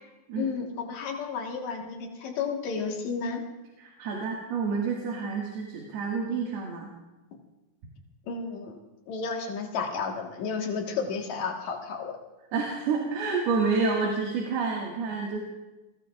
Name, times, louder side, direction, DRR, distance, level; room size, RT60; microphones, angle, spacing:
voice 1, 0.4-3.4 7.3-7.4 8.3-8.8 9.1-12.2, left 5 dB, 55° left, 1 dB, 2.6 m, -32 dB
voice 2, 3.8-6.9 12.5-15.4, right 4 dB, 85° right, -2 dB, 3.9 m, -29 dB
27.5 x 19.0 x 2.5 m, 1.1 s
omnidirectional pair, 4.5 m